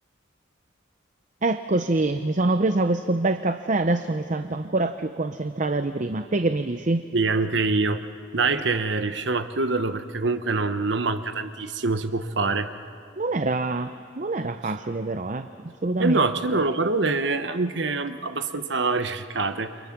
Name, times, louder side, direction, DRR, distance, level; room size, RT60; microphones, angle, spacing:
voice 1, 1.4-7.0 13.2-15.5 15.8-16.2, right 2 dB, 40° right, 9 dB, 0.7 m, -25 dB
voice 2, 7.1-8.0 8.3-12.7 14.6-14.7 16.0-19.8, right 3 dB, 65° right, 9 dB, 1.1 m, -25 dB
29.5 x 25.0 x 6.0 m, 2.3 s
head